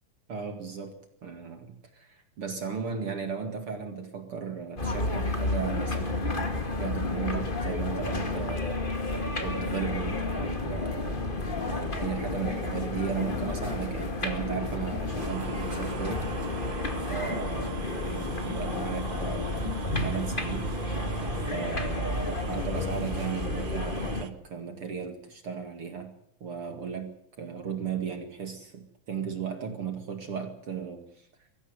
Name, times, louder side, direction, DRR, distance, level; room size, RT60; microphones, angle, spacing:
voice 1, 0.3-0.9 1.2-6.4 6.8-8.8 9.4-11.3 11.7-16.6 17.0-19.7 20.0-20.7 21.5-26.1 26.4-31.3, right 6 dB, 45° right, 6 dB, 2.7 m, -36 dB
sound 1, 4.8-24.2, left 2 dB, 20° left, 1.7 m, -31 dB
sound 2, 10.1-20.0, left 6 dB, 70° left, 3.5 m, -42 dB
sound 3, 15.2-24.3, right 11 dB, 65° right, 1.8 m, -43 dB
24.0 x 15.5 x 9.5 m, 0.77 s
omnidirectional pair, 4.0 m